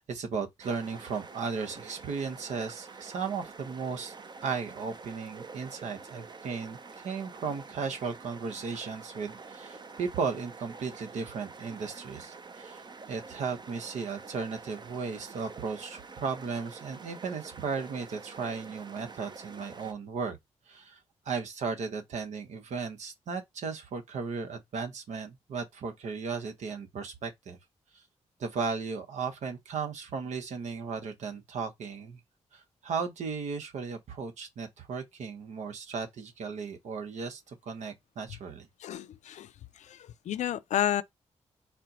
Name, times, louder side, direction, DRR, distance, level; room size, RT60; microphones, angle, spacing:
voice 1, 0.0-4.1 4.4-20.4 20.7-21.0 21.2-27.6 27.9-28.0 28.4-32.2 32.5-38.7, right 5 dB, 80° right, 0.9 m, -36 dB
sound 1, 0.6-19.9, right 4 dB, 40° right, 0.6 m, -47 dB
voice 2, 38.8-39.5 39.9-40.0 40.3-41.0, left 11 dB, 85° left, 0.4 m, -30 dB
4.3 x 2.2 x 3.8 m
cardioid pair, 75°, 12 cm